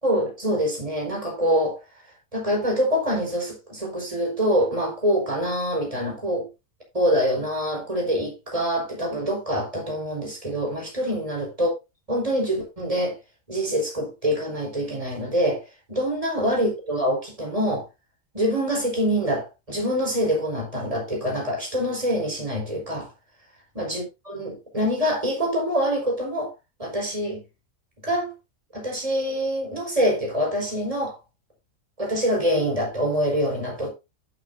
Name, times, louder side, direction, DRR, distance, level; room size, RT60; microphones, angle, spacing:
voice 1, 0.0-1.8 2.3-6.5 6.9-11.7 12.1-13.1 13.5-15.6 15.9-17.8 18.3-23.1 23.7-26.5 26.8-27.4 28.0-28.3 28.7-31.1 32.0-33.9, equal, 25° right, 5.2 m, -25 dB
11.5 x 9.0 x 2.7 m
omnidirectional pair, 1.5 m